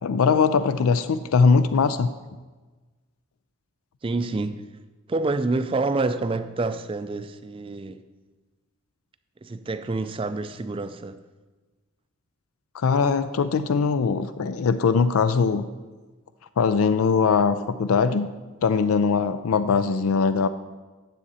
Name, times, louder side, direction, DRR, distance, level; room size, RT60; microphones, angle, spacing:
voice 1, 0.0-2.1 12.7-15.7 16.6-18.3 18.6-20.5, left 5 dB, 90° left, 12 dB, 0.4 m, -21 dB
voice 2, 4.0-4.6 5.1-8.0 9.4-11.2, right 3 dB, 25° right, 11 dB, 0.3 m, -27 dB
9.9 x 7.3 x 4.2 m, 1.3 s
head